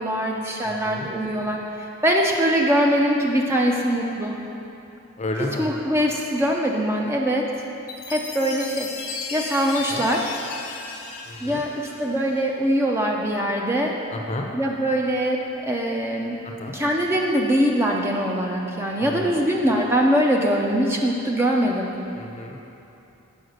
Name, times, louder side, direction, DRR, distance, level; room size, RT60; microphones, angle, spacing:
voice 1, 0.0-4.4 5.4-7.5 8.1-8.9 9.3-10.3 11.4-14.0 14.5-16.4 16.7-22.0, equal, 10° right, -1 dB, 0.5 m, -22 dB
voice 2, 0.6-1.1 5.2-5.7 9.9-10.0 11.3-11.6 14.1-14.5 16.4-16.7 19.0-19.4 22.2-22.6, left 2 dB, 30° left, 1 dB, 0.6 m, -32 dB
Chime, 7.9-12.5, left 5 dB, 75° left, 0.9 m, -35 dB
8.0 x 4.8 x 6.4 m, 2.9 s
head